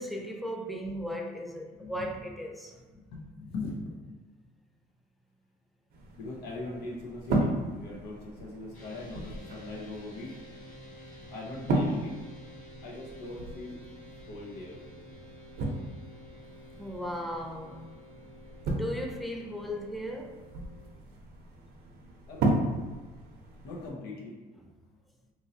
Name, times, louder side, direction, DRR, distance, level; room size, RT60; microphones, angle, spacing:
voice 1, 0.0-2.8 16.8-17.9 18.7-20.4, equal, ahead, 0.3 m, -36 dB
voice 2, 1.8-2.3 2.9-4.2 6.2-10.3 11.3-12.1 12.8-13.8 14.3-14.8 22.3-22.6 23.6-24.3, left 2 dB, 80° left, 0.7 m, -40 dB
sound 1, 5.9-23.9, right 2 dB, 65° right, 0.7 m, -35 dB
sound 2, 8.7-20.9, equal, 50° left, 1.4 m, -51 dB
3.0 x 2.6 x 2.7 m
cardioid pair, 110°, 17 cm